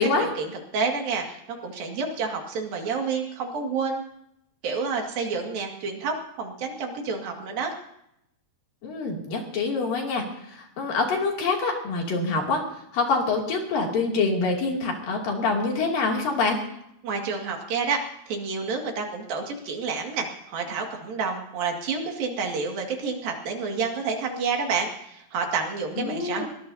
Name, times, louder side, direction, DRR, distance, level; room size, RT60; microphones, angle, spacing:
voice 1, 0.0-4.0 4.6-7.7 17.0-18.0 18.3-26.5, right 5 dB, 70° right, 2 dB, 3.9 m, -29 dB
voice 2, 8.8-12.6 12.9-16.6 26.0-26.5, left 3 dB, 65° left, 0 dB, 4.4 m, -25 dB
22.5 x 20.0 x 2.8 m, 0.78 s
omnidirectional pair, 4.2 m